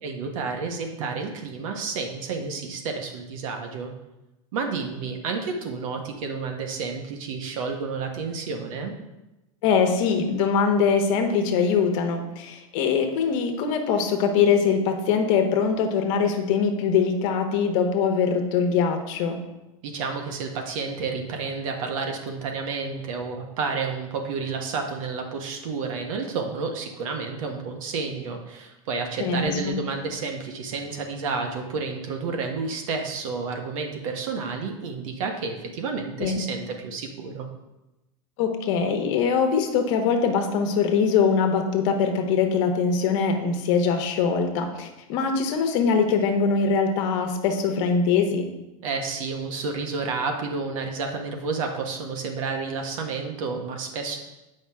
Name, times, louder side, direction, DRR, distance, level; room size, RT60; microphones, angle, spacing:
voice 1, 0.0-3.9 4.5-8.9 19.8-37.5 48.8-54.2, right 4 dB, 70° right, 3 dB, 1.3 m, -30 dB
voice 2, 9.6-19.4 29.2-29.8 36.2-36.4 38.4-48.5, left 6 dB, 60° left, 4 dB, 1.2 m, -22 dB
7.4 x 5.3 x 3.6 m, 0.98 s
hypercardioid pair, 115°, 18 cm